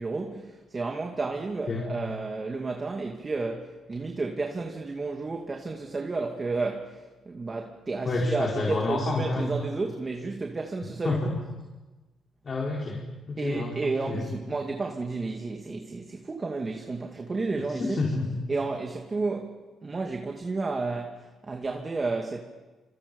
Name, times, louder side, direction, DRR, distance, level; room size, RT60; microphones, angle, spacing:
voice 1, 0.0-11.2 13.4-18.0 18.5-22.4, right 3 dB, 30° right, 2.5 m, -32 dB
voice 2, 8.0-9.5 11.0-11.3 12.4-13.7 14.1-14.2 17.5-18.3, left 3 dB, 40° left, 4.9 m, -29 dB
29.0 x 26.5 x 5.6 m
cardioid pair, 90°, 0 cm